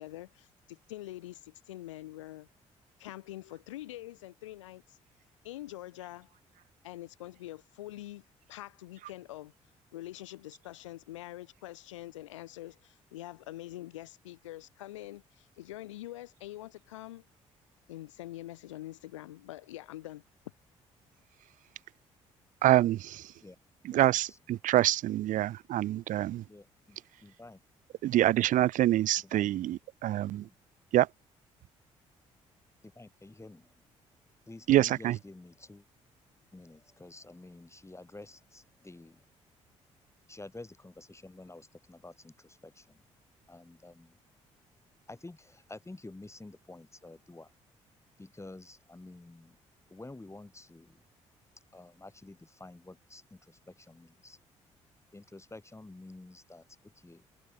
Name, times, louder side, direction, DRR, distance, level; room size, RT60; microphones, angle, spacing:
voice 1, 0.0-2.5 3.0-5.0 5.4-6.3 6.8-8.2 8.5-9.5 9.9-17.2 17.9-20.2, left 15 dB, 85° left, 1.9 m, -45 dB
voice 2, 22.6-23.3 23.9-26.4 28.0-30.5 30.9-31.1 34.7-35.2, right 14 dB, 55° right, 0.5 m, -26 dB
voice 3, 23.9-24.4 24.7-24.8 26.5-27.6 29.2-29.5 30.3-30.6 32.8-33.8 34.5-35.8 36.5-39.3 40.3-43.0 43.5-44.2 45.1-47.5 48.2-49.6 49.9-51.0 51.7-54.4 55.1-57.3, left 2 dB, 20° left, 6.9 m, -50 dB
hypercardioid pair, 45°, 16 cm